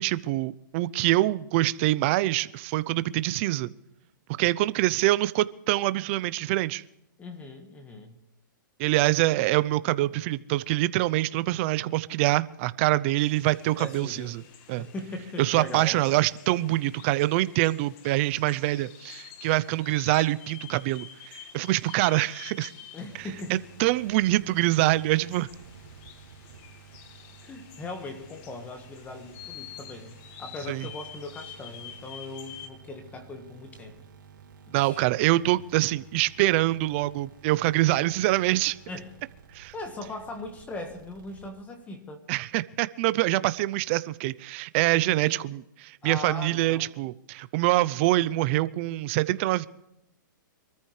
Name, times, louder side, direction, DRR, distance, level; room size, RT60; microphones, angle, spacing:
voice 1, 0.0-3.7 4.4-6.8 8.8-14.3 14.7-14.9 15.4-22.7 23.5-25.5 30.7-30.9 34.7-38.8 39.5-39.7 42.3-49.7, right 17 dB, 35° right, 17 dB, 0.6 m, -25 dB
voice 2, 7.2-8.1 13.7-14.4 14.8-16.1 22.9-23.6 27.4-34.0 34.7-35.1 38.9-39.1 39.7-42.2 45.2-45.4 46.0-46.9, left 2 dB, 15° left, 6 dB, 1.6 m, -39 dB
sound 1, 13.2-32.7, left 9 dB, 35° left, 1.8 m, -48 dB
sound 2, 23.1-41.9, right 6 dB, 80° right, 3.7 m, -52 dB
24.5 x 14.0 x 3.2 m, 0.85 s
hypercardioid pair, 150°, 11 cm